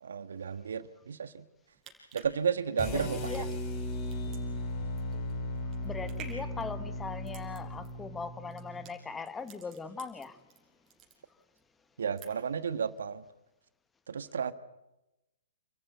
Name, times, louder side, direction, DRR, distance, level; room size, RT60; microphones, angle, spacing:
voice 1, 0.0-1.4 2.1-3.6 12.0-13.2 14.1-14.5, right 7 dB, 70° right, 1.5 m, -33 dB
sound 1, 1.6-10.6 10.9-11.6 11.9-12.6 13.0-13.1, right 7 dB, 25° right, 5.5 m, -52 dB
sound 2, 2.8-8.9, left 2 dB, 35° left, 3.7 m, -37 dB
voice 2, 2.9-3.5 5.7-10.5, left 4 dB, 10° left, 1.3 m, -40 dB
29.0 x 14.5 x 9.3 m
hypercardioid pair, 125°, 0 cm